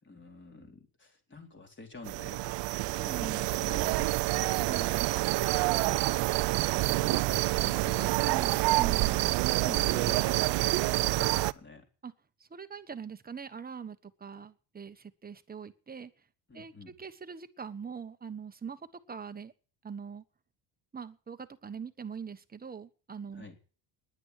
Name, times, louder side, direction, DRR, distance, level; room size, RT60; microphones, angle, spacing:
voice 1, 0.0-2.6 3.2-4.5 5.8-6.3 6.8-8.2 9.1-9.3 9.6-11.8 16.5-16.9 23.3-23.6, left 3 dB, 25° left, 4.1 m, -47 dB
sound 1, 2.0-11.5, right 19 dB, 65° right, 0.6 m, -27 dB
voice 2, 3.0-3.5 4.7-5.1 8.2-9.3 12.0-12.1 12.4-16.1 16.5-19.5 19.8-20.2 20.9-23.4, right 6 dB, 20° right, 1.2 m, -42 dB
10.5 x 9.4 x 9.7 m
cardioid pair, 110°, 47 cm